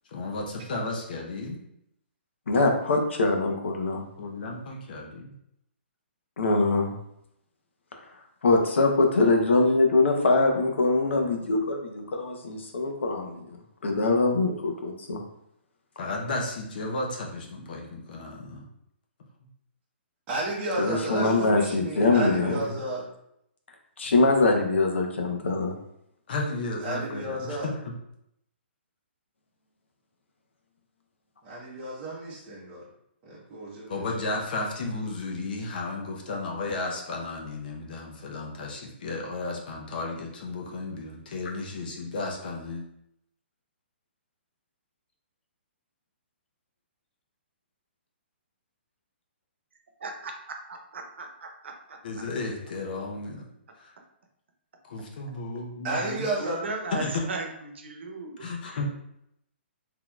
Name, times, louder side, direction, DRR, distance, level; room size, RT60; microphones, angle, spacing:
voice 1, 0.1-1.6 3.9-5.3 16.0-18.6 22.5-22.6 26.3-27.8 33.9-42.8 52.0-53.5 53.8-53.9 54.9-56.3 56.9-57.2 58.4-59.0, left 2 dB, 50° left, 0 dB, 0.7 m, -33 dB
voice 2, 2.5-4.0 6.4-7.0 8.4-13.6 13.8-15.2 20.8-22.6 24.0-25.7, left 3 dB, 85° left, 2 dB, 0.8 m, -23 dB
voice 3, 20.3-23.1 26.8-27.7 31.4-32.9 33.2-34.1 55.8-56.7, right 2 dB, 20° right, -6 dB, 0.9 m, -32 dB
voice 4, 50.0-50.3 50.7-52.0 55.9-58.8, right 3 dB, 75° right, 3 dB, 0.8 m, -37 dB
4.0 x 2.9 x 2.3 m, 0.76 s
hypercardioid pair, 165°, 6 cm